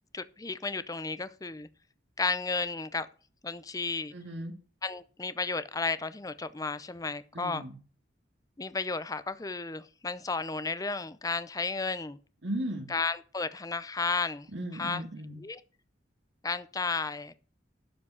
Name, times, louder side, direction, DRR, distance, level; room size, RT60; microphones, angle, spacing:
voice 1, 0.1-1.7 2.2-3.1 3.4-4.1 4.8-7.6 8.6-12.2 12.9-15.0 15.4-15.6 16.4-17.4, left 4 dB, 20° left, 0.5 m, -33 dB
voice 2, 4.1-4.5 7.3-7.8 12.4-12.9 14.5-15.4, right 1 dB, 75° right, 2.1 m, -36 dB
12.0 x 5.1 x 8.1 m
head